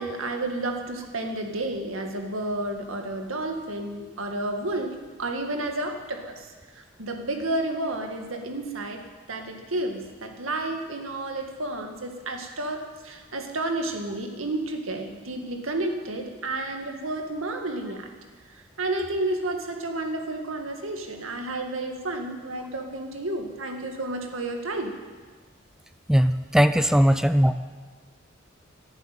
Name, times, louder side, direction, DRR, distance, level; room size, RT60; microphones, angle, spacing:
voice 1, 0.0-6.5 6.8-9.0 9.3-18.1 18.5-24.9, right 2 dB, 90° right, 4 dB, 2.0 m, -31 dB
voice 2, 26.1-27.6, equal, 5° right, 11 dB, 0.4 m, -19 dB
11.5 x 11.0 x 9.2 m, 1.5 s
head